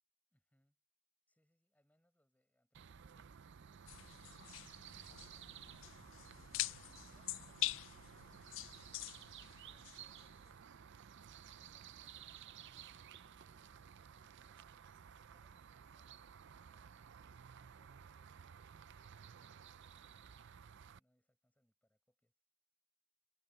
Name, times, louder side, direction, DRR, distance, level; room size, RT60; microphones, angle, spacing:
voice 1, 0.3-0.8 1.3-4.3 4.8-6.1 9.2-10.9 11.5-14.7 15.2-22.3, equal, 5° left, 6.7 m, -81 dB
sound 1, 2.7-21.0, right 7 dB, 55° right, 0.5 m, -56 dB
sound 2, 3.9-10.6, left 16 dB, 60° left, 0.4 m, -45 dB
head